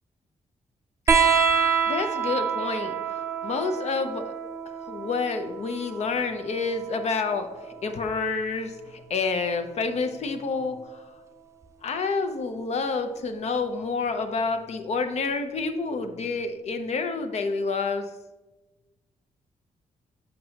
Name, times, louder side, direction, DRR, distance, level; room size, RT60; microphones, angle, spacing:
sound 1, 1.1-8.1 9.5-10.3 11.6-11.7, right 6 dB, 25° right, 0.4 m, -27 dB
voice 1, 1.3-4.3 4.9-7.5 7.8-11.0 11.8-18.0, left 4 dB, 60° left, 7 dB, 0.6 m, -29 dB
7.3 x 5.3 x 2.9 m, 1.1 s
wide cardioid pair, 145°, 13 cm